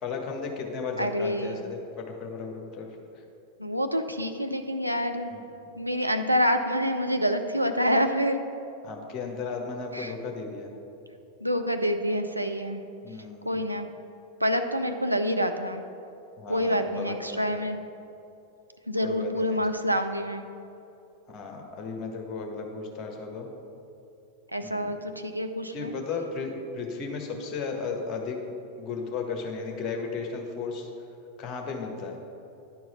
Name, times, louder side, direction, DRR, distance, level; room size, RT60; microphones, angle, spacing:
voice 1, 0.0-3.0 5.3-5.5 8.8-10.7 13.0-13.6 16.4-17.5 19.0-19.6 21.3-23.5 24.6-24.9 25.7-28.4 28.8-30.9 31.4-32.2, left 4 dB, 30° left, 2 dB, 1.4 m, -35 dB
voice 2, 1.0-1.6 3.6-5.3 5.8-8.4 9.9-10.1 11.4-12.8 13.5-13.9 14.4-15.8 16.5-17.8 18.9-20.4 24.5-25.9, equal, 85° right, 6 dB, 0.4 m, -27 dB
10.5 x 4.6 x 5.7 m, 2.8 s
figure-of-eight pair, 90°, 0 cm